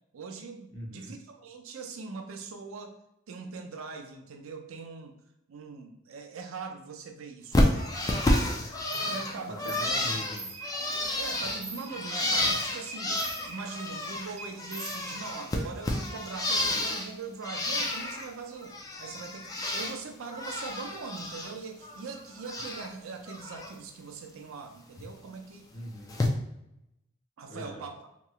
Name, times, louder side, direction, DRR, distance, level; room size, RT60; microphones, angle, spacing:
voice 1, 0.1-3.0 3.3-5.1 5.5-7.9 9.0-9.9 11.2-25.7 27.4-28.0, right 4 dB, 80° right, 5 dB, 0.5 m, -41 dB
voice 2, 0.7-1.1 9.5-10.5 25.7-26.2 27.5-27.8, equal, 65° left, -4 dB, 1.0 m, -41 dB
Bird, 7.5-14.3 14.6-17.1 17.4-18.3 18.6-20.0 20.3-21.5 21.8-22.9 23.3-23.7 25.0-25.1 26.1-26.3, left 1 dB, 15° left, 0.3 m, -30 dB
sound 1, 8.9-9.1 9.7-9.9 10.2-11.0 11.3-12.4 12.9-14.0 14.4-15.6, right 2 dB, 30° right, 0.6 m, -44 dB
3.0 x 2.9 x 2.3 m, 0.84 s
head